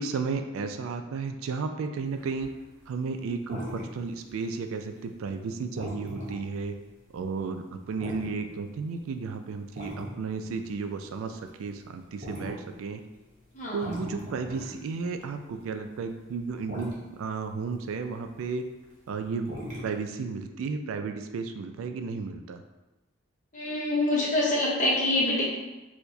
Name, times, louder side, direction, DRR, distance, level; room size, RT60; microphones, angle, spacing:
voice 1, 0.0-2.5 2.9-6.7 7.1-13.0 13.7-18.7 19.1-19.5 19.8-22.6, right 4 dB, 80° right, 7 dB, 0.3 m, -33 dB
sound 1, 2.2-3.0 3.3-4.6 5.0-5.3 5.8-7.4 7.8-8.8 9.5-10.1 10.6-10.7 11.0-15.6 16.0-16.4 16.6-17.0 17.9-18.2 18.6-19.0 19.5-20.0, equal, 35° right, 0.9 m, -39 dB
voice 2, 13.5-13.9 23.5-25.4, left 1 dB, 40° left, -5 dB, 0.8 m, -26 dB
4.5 x 2.1 x 2.6 m, 1.1 s
head